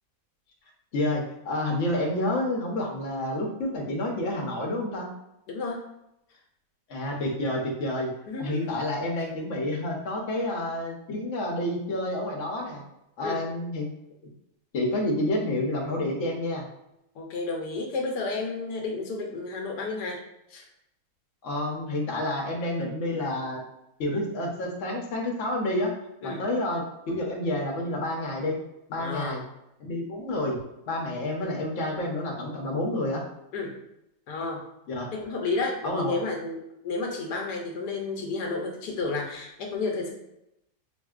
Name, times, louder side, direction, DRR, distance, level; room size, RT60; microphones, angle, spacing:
voice 1, 0.9-5.1 6.9-8.1 8.4-12.8 13.2-13.9 14.7-16.7 21.4-23.6 24.0-25.9 26.2-28.6 28.9-29.4 29.8-30.6 30.9-33.2 34.9-35.1 35.8-36.1, left 1 dB, 55° left, 0 dB, 0.9 m, -29 dB
voice 2, 5.5-5.8 8.3-8.9 13.2-13.4 17.1-20.2 20.5-20.7 26.2-26.4 29.0-29.4 33.5-33.8 34.3-34.6 35.1-40.1, left 3 dB, 80° left, 0 dB, 1.2 m, -31 dB
4.2 x 2.6 x 2.3 m, 0.84 s
omnidirectional pair, 1.8 m